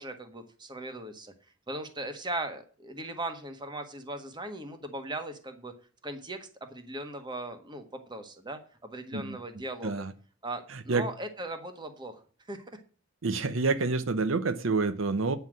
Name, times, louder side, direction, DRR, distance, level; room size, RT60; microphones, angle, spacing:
voice 1, 0.0-1.3 1.7-5.7 6.0-10.1 10.4-12.2 12.5-12.6, right 1 dB, 20° right, 7 dB, 1.5 m, -38 dB
voice 2, 10.7-11.0 13.2-15.4, right 3 dB, 70° right, 11 dB, 0.8 m, -28 dB
9.6 x 5.8 x 7.4 m, 0.40 s
head